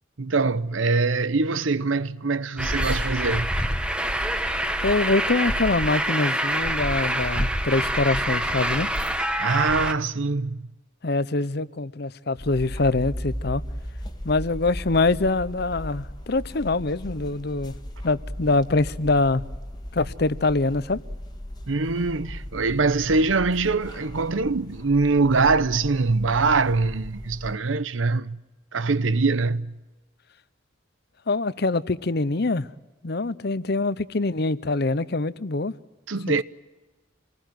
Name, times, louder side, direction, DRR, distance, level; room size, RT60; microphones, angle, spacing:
voice 1, 0.2-3.5 9.4-10.7 21.7-28.4 28.7-29.7 36.1-36.4, right 3 dB, 90° right, 0.9 m, -23 dB
Truck, 2.6-9.9, right 1 dB, 5° right, 1.2 m, -26 dB
voice 2, 4.8-8.9 11.0-13.6 14.2-17.7 18.0-19.4 19.9-21.0 31.3-32.7 33.0-35.7, left 3 dB, 55° left, 0.8 m, -24 dB
sound 1, 12.4-27.6, equal, 20° left, 1.7 m, -37 dB
26.5 x 20.0 x 9.2 m
head